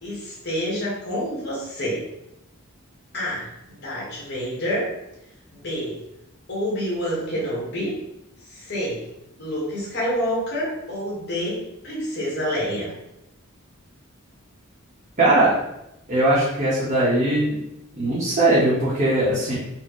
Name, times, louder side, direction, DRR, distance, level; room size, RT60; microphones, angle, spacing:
voice 1, 0.0-2.0 3.1-4.9 5.5-6.0 6.5-7.9 8.5-9.0 9.4-12.9, equal, 50° left, -5 dB, 1.3 m, -28 dB
voice 2, 15.2-15.5 16.1-17.6 18.0-19.5, right 1 dB, 40° right, -10 dB, 0.8 m, -20 dB
4.1 x 2.0 x 3.0 m, 0.85 s
head